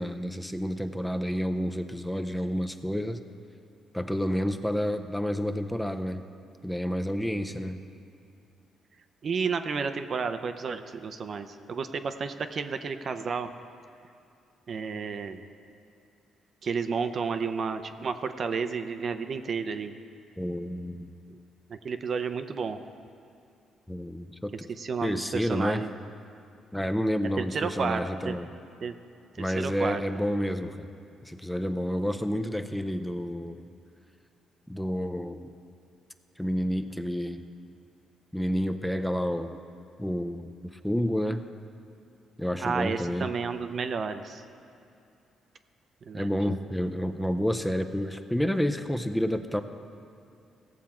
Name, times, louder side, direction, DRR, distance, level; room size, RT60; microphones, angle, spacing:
voice 1, 0.0-3.2 3.9-6.2 6.6-7.8 20.4-21.1 23.9-24.7 25.0-25.8 26.7-28.5 29.4-30.9 31.2-33.7 34.7-35.5 36.4-37.5 38.3-39.6 40.0-40.5 40.8-41.4 42.4-43.3 46.1-49.6, equal, 5° left, 7 dB, 0.6 m, -29 dB
voice 2, 9.2-13.5 14.7-15.4 16.6-20.0 21.3-21.4 21.7-22.8 24.8-25.9 27.4-28.3 28.8-28.9 29.4-30.0 42.6-44.4 46.0-46.3, right 5 dB, 50° right, 9 dB, 0.6 m, -31 dB
16.5 x 7.3 x 4.4 m, 2.6 s
cardioid pair, 90°, 0 cm